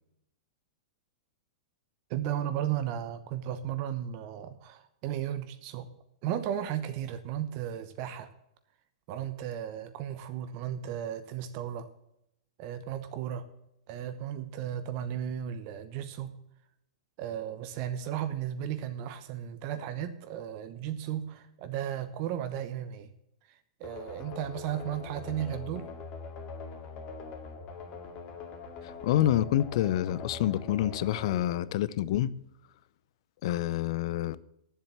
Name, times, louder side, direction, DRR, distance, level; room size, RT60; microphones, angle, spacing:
voice 1, 2.1-5.9 6.2-8.3 9.1-11.9 12.6-13.5 13.9-16.3 17.2-23.1 23.5-25.9, right 10 dB, 45° right, 1.0 m, -35 dB
sound 1, 23.8-32.5, left 4 dB, 35° left, 2.2 m, -43 dB
voice 2, 29.0-32.3 33.4-34.4, left 12 dB, 55° left, 0.6 m, -27 dB
10.0 x 7.6 x 7.2 m
hypercardioid pair, 140°, 3 cm